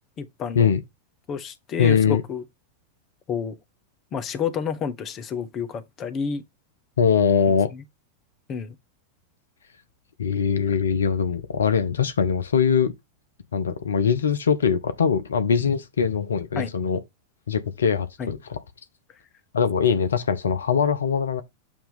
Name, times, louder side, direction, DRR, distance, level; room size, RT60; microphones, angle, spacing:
voice 1, 0.2-0.7 1.3-2.4 3.3-3.5 4.1-6.4 7.7-7.8 8.5-8.7 16.6-16.7 18.2-18.3, left 6 dB, 30° left, 1.0 m, -29 dB
voice 2, 1.8-2.2 7.0-7.7 10.2-12.9 13.5-17.0 17.5-18.6 19.5-21.4, left 6 dB, 70° left, 0.7 m, -22 dB
7.1 x 2.9 x 5.2 m
figure-of-eight pair, 90°, 0 cm